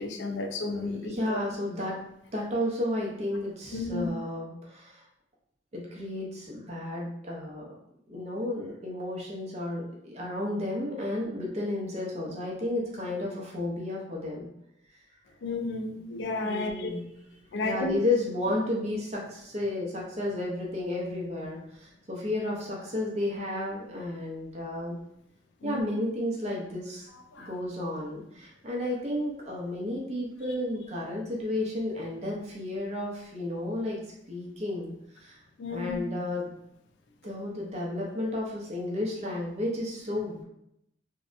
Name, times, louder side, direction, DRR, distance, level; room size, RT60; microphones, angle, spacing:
voice 1, 0.0-1.4 3.7-4.1 15.4-17.0 17.5-18.0 25.6-25.8 27.3-27.5 35.6-36.0, left 3 dB, 75° left, 5 dB, 0.3 m, -32 dB
voice 2, 0.8-2.0 2.3-5.0 5.7-7.7 8.1-14.5 16.4-17.1 17.6-25.0 25.6-27.1 27.4-34.0 34.3-35.4 35.7-36.5 37.2-40.4, left 1 dB, 35° right, -3 dB, 0.6 m, -32 dB
2.7 x 2.1 x 2.5 m, 0.80 s
head